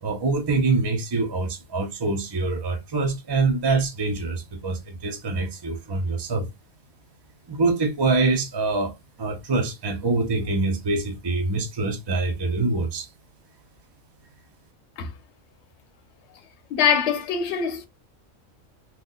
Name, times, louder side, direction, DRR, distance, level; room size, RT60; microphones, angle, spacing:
voice 1, 0.0-6.5 7.5-13.1, right 3 dB, 40° right, 0.3 m, -25 dB
voice 2, 16.7-17.9, left 7 dB, 60° left, 0.9 m, -23 dB
3.0 x 2.1 x 3.8 m
omnidirectional pair, 1.4 m